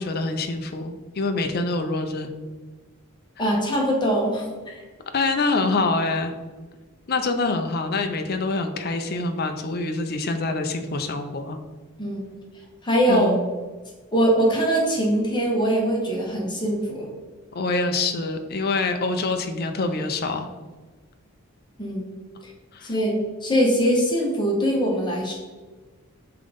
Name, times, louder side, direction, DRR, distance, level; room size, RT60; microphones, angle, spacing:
voice 1, 0.0-2.3 5.1-6.3 7.1-11.6 13.1-13.4 17.5-20.5 22.7-22.9, left 3 dB, 45° left, 6 dB, 0.6 m, -25 dB
voice 2, 3.4-4.8 12.0-12.2 12.8-13.3 14.1-17.1 21.8-22.0 22.4-22.5 22.8-25.3, equal, 20° left, -2 dB, 1.4 m, -22 dB
5.7 x 3.8 x 5.2 m, 1.3 s
head